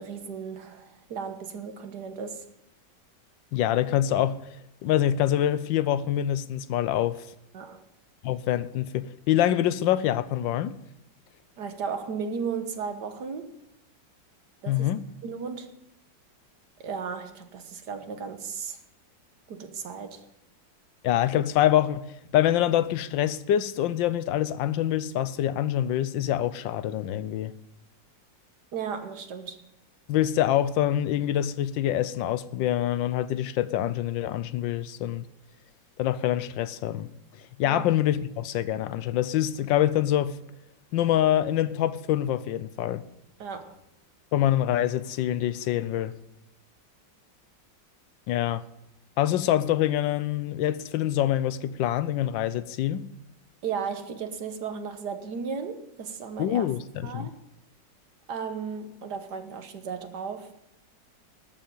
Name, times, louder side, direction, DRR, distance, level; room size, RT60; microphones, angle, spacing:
voice 1, 0.0-2.4 7.5-7.8 11.6-13.6 14.6-14.9 15.2-15.7 16.8-18.8 19.5-20.3 28.7-29.6 37.6-37.8 43.4-43.7 53.6-56.7 57.0-57.4 58.3-60.5, right 6 dB, 65° right, 1.7 m, -35 dB
voice 2, 3.5-4.4 4.8-7.3 8.2-10.8 14.7-15.0 21.0-22.1 22.3-27.5 30.1-35.3 36.0-37.1 37.6-40.4 40.9-43.0 44.3-46.2 48.3-48.6 49.2-53.1 56.4-57.3, left 12 dB, 85° left, 1.4 m, -25 dB
13.0 x 7.1 x 9.0 m
omnidirectional pair, 2.0 m